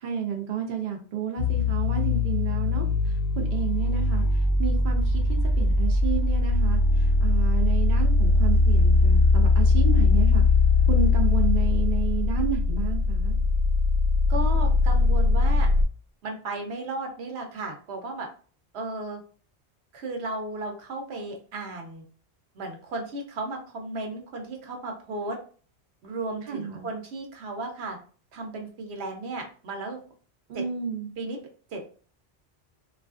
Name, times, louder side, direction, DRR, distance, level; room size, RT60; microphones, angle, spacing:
voice 1, 0.0-2.9 3.4-4.2 4.6-5.2 5.6-6.8 7.2-10.4 10.9-13.4 26.5-26.9 30.5-31.1, right 7 dB, 60° right, 3 dB, 0.6 m, -31 dB
sound 1, 1.4-15.9, left 3 dB, 55° left, 0.6 m, -21 dB
voice 2, 14.3-15.7 16.2-18.3 18.7-19.2 19.9-22.0 22.5-25.4 26.0-28.0 28.3-30.0 30.5-30.6 31.2-31.4 31.7-31.9, right 2 dB, 75° right, 3 dB, 1.0 m, -34 dB
3.1 x 2.4 x 2.4 m, 0.41 s
omnidirectional pair, 1.1 m